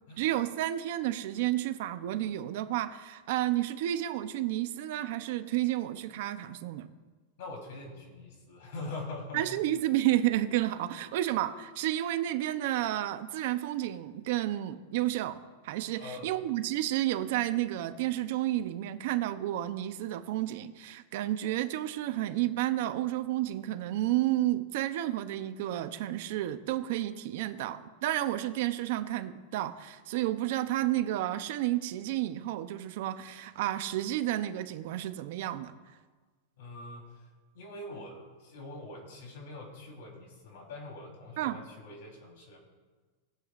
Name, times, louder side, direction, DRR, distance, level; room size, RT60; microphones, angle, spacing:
voice 1, 0.2-6.9 9.3-35.7 41.4-41.6, right 14 dB, 60° right, 10 dB, 0.7 m, -31 dB
voice 2, 7.4-9.5 16.0-16.4 36.6-37.2 37.5-42.6, left 2 dB, 70° left, 0 dB, 3.8 m, -43 dB
20.0 x 8.1 x 2.5 m, 1.4 s
supercardioid pair, 155°, 0 cm